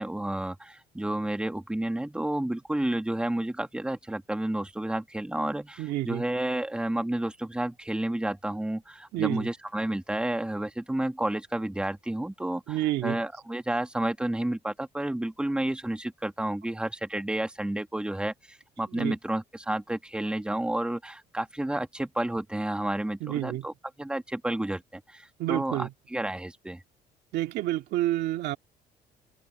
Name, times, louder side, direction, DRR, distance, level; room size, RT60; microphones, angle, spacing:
voice 1, 0.0-23.7 24.0-26.8, right 1 dB, 5° right, 1.9 m, -31 dB
voice 2, 5.8-6.3 9.1-9.5 12.7-13.2 18.9-19.2 23.2-23.7 25.4-25.9 27.3-28.6, right 15 dB, 80° right, 2.2 m, -29 dB
open air
cardioid pair, 110°, 17 cm